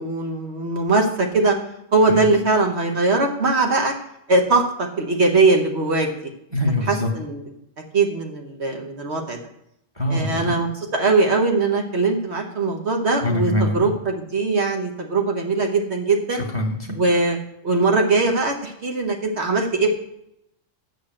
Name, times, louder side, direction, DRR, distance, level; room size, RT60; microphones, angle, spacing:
voice 1, 0.0-1.6 1.9-3.9 4.3-6.1 6.9-7.4 7.9-9.4 10.1-16.4 17.0-17.4 17.6-19.9, right 3 dB, 60° right, 2 dB, 1.4 m, -21 dB
voice 2, 6.5-7.1 10.0-10.5 13.2-13.8 16.5-17.0, left 1 dB, 20° right, 1 dB, 1.6 m, -23 dB
8.5 x 6.0 x 7.6 m, 0.78 s
omnidirectional pair, 1.3 m